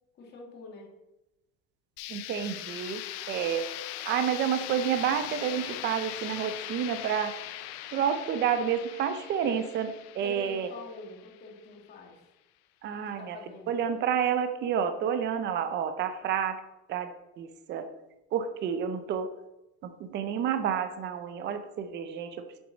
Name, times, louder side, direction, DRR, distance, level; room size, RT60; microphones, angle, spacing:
voice 1, 0.2-0.9 10.2-12.2 13.0-13.8, left 3 dB, 35° left, 0 dB, 2.0 m, -45 dB
sound 1, 2.0-11.7, left 14 dB, 75° left, 0.7 m, -40 dB
voice 2, 2.1-3.0 3.3-3.6 4.1-7.3 7.9-10.7 12.8-13.4 13.7-16.6 16.9-17.1 17.4-17.9 18.3-19.3 19.8-22.3, right 8 dB, 35° right, 8 dB, 0.7 m, -29 dB
8.2 x 7.2 x 4.1 m, 0.97 s
cardioid pair, 160°, 30 cm